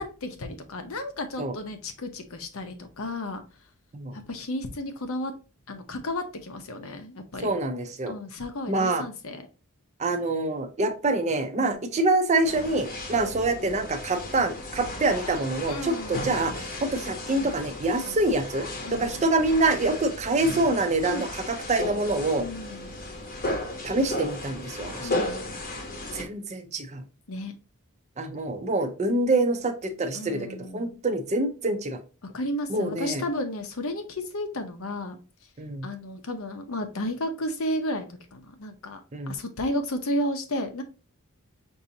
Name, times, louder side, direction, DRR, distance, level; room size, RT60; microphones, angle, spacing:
voice 1, 0.0-3.4 4.1-5.3 5.7-7.5 8.1-9.4 11.5-11.8 13.1-13.4 15.7-16.2 18.0-18.2 18.8-19.3 21.0-21.3 22.4-23.0 25.0-25.6 27.3-27.5 30.1-31.0 32.2-35.2 35.8-39.0 39.3-40.8, left 1 dB, 70° left, 7 dB, 0.7 m, -33 dB
voice 2, 7.4-8.2 8.7-9.0 10.0-22.4 23.8-25.2 26.1-27.0 28.2-30.5 30.7-32.0 32.7-33.2 35.6-35.9 39.1-39.3, right 2 dB, 30° right, 7 dB, 0.5 m, -26 dB
sound 1, 12.4-26.2, left 1 dB, 40° left, 0.8 m, -35 dB
5.4 x 2.6 x 2.7 m, 0.33 s
head